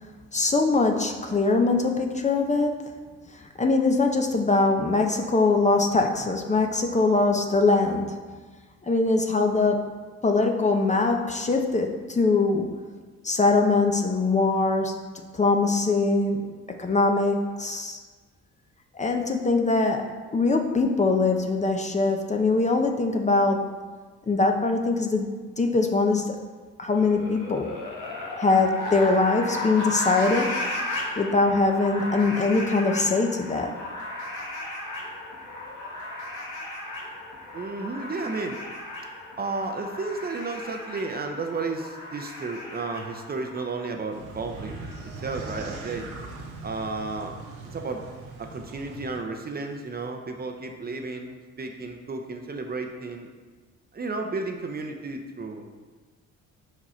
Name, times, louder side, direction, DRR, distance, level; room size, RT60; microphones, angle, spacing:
voice 1, 0.3-3.0 3.3-8.3 8.8-10.0 10.2-12.8 13.2-15.1 15.3-16.5 16.8-18.0 18.9-23.8 24.3-25.3 25.6-26.3 26.8-27.7 28.4-30.6 31.2-33.7, left 3 dB, 25° left, 3 dB, 0.6 m, -22 dB
sound 1, 26.9-43.9, left 1 dB, 85° left, 1.3 m, -35 dB
voice 2, 37.5-38.6 39.4-46.1 46.6-47.4 47.7-48.0 48.4-53.3 53.9-55.7, right 3 dB, 30° right, 4 dB, 0.7 m, -33 dB
sound 2, 44.1-49.2, right 3 dB, 85° right, 1.0 m, -40 dB
5.4 x 4.9 x 4.3 m, 1.4 s
cardioid pair, 90°, 30 cm